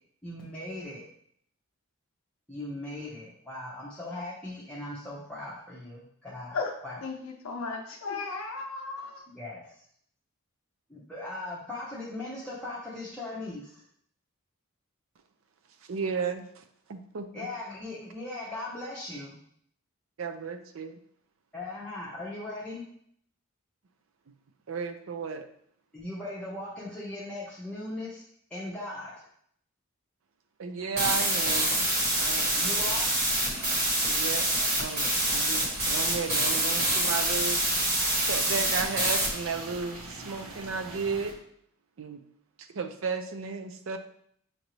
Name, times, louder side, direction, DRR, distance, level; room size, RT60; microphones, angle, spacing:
voice 1, 0.2-1.1 2.5-6.6 6.8-7.0 9.3-9.8 10.9-13.8 17.3-19.4 21.5-22.8 25.9-28.2 28.5-29.3 32.6-33.1, left 2 dB, 5° left, -7 dB, 0.7 m, -39 dB
voice 2, 7.0-9.2, left 4 dB, 70° left, 2 dB, 0.5 m, -35 dB
voice 3, 15.9-16.6 16.9-17.5 20.2-21.0 24.7-25.5 30.6-31.7 32.1-32.8 34.1-34.5 34.8-35.0 35.3-37.6 38.2-41.3 42.0-42.2 42.6-44.0, right 5 dB, 65° right, 8 dB, 0.5 m, -34 dB
sound 1, 31.0-39.3, right 1 dB, 45° right, 1.4 m, -26 dB
sound 2, 31.7-41.3, right 2 dB, 90° right, 0.9 m, -41 dB
6.5 x 2.6 x 3.0 m, 0.65 s
head